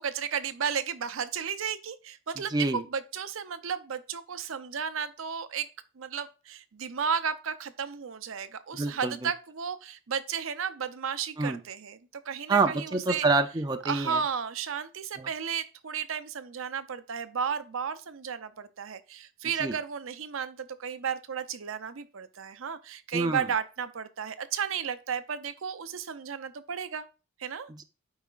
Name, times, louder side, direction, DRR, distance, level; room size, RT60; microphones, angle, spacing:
voice 1, 0.0-2.5 2.9-5.7 6.0-12.0 12.2-13.2 13.8-27.0 27.4-27.7, right 7 dB, 70° right, 0.6 m, -33 dB
voice 2, 2.4-2.8 8.7-9.3 11.4-11.6 12.5-14.2 15.2-15.3 19.6-19.8 23.1-23.5 27.7-27.8, right 3 dB, 20° right, 0.5 m, -27 dB
12.0 x 4.8 x 2.4 m
head